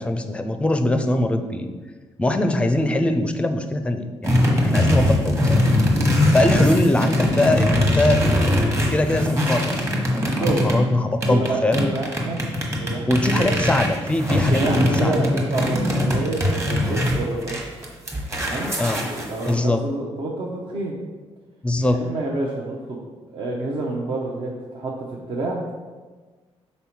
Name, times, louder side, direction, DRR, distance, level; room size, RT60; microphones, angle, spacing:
voice 1, 0.0-1.7 2.2-5.4 6.3-8.2 8.9-11.9 13.1-15.1 18.8-19.0 19.5-19.8 21.6-22.0, left 1 dB, 10° left, 7 dB, 0.5 m, -22 dB
sound 1, 4.2-10.8 11.2-19.5, left 1 dB, 25° right, 1.2 m, -21 dB
voice 2, 11.2-12.4 12.8-13.5 14.5-17.6 18.4-18.7 19.3-20.9 21.9-23.0 23.3-25.6, right 2 dB, 55° right, -3 dB, 0.8 m, -28 dB
5.4 x 4.2 x 4.5 m, 1.4 s
cardioid pair, 110°, 11 cm